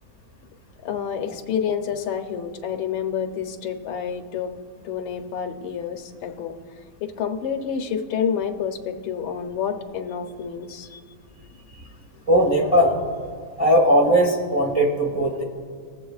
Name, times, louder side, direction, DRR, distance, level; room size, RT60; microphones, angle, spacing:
voice 1, 0.8-4.5 4.8-6.5 7.0-10.9, left 7 dB, 80° left, 4 dB, 1.5 m, -28 dB
voice 2, 12.3-13.0 13.6-15.4, equal, 25° right, -1 dB, 0.8 m, -18 dB
20.0 x 7.5 x 2.4 m, 2.1 s
omnidirectional pair, 2.2 m